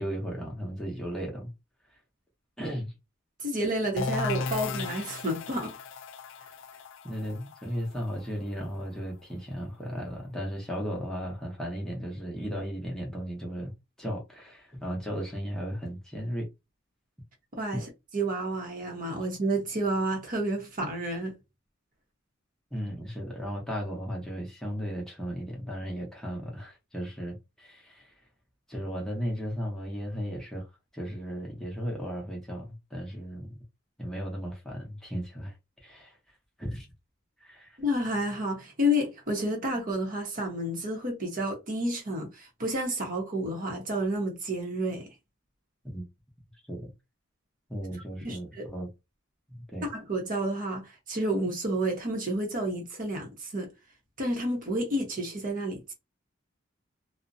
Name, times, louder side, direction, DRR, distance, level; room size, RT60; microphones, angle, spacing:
voice 1, 0.0-1.5 2.6-2.9 7.0-16.5 17.7-17.8 22.7-28.1 28.7-30.7 30.9-33.6 34.0-35.5 35.8-36.2 36.6-36.9 37.4-37.8 45.8-46.1 46.7-46.9 47.7-48.9 49.5-49.9, equal, 5° left, 0.7 m, -35 dB
voice 2, 3.4-5.8 17.5-21.3 37.8-45.1 48.2-48.7 49.8-53.7 54.2-55.9, equal, 45° right, 0.8 m, -30 dB
sound 1, 4.0-9.5, left 4 dB, 65° left, 0.3 m, -36 dB
2.5 x 2.0 x 2.5 m
head